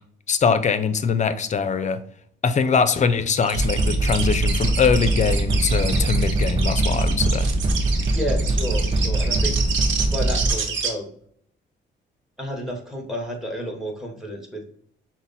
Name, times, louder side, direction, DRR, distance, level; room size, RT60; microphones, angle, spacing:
voice 1, 0.3-2.0 2.4-7.5, left 6 dB, 35° left, 11 dB, 0.5 m, -22 dB
sound 1, 3.4-10.9, right 6 dB, 70° right, 1.0 m, -29 dB
sound 2, 3.5-10.5, right 2 dB, 25° right, 0.7 m, -22 dB
voice 2, 8.1-9.6 10.1-11.1 12.4-14.6, equal, ahead, 1 dB, 1.4 m, -31 dB
6.0 x 2.1 x 4.0 m, 0.63 s
cardioid pair, 90°, 20 cm